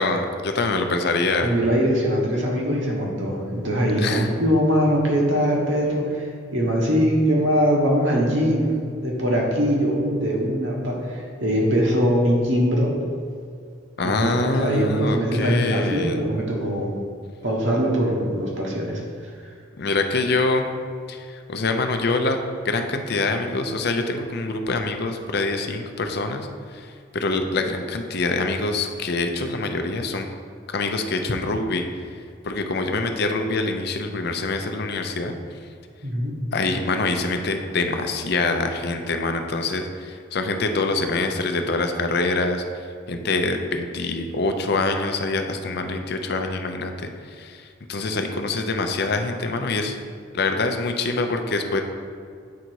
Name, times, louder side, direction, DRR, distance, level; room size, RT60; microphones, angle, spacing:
voice 1, 0.0-1.5 4.0-4.3 14.0-16.2 19.8-20.6 21.1-22.4 22.6-30.3 30.7-31.8 32.4-35.3 36.5-42.6 43.1-50.0 50.3-51.8, left 3 dB, 50° left, 5 dB, 0.5 m, -25 dB
voice 2, 1.4-6.2 6.5-8.7 9.0-12.9 14.0-16.9 17.4-19.0 36.0-36.3, equal, 65° right, -1 dB, 1.3 m, -22 dB
8.4 x 3.9 x 4.6 m, 2.3 s
head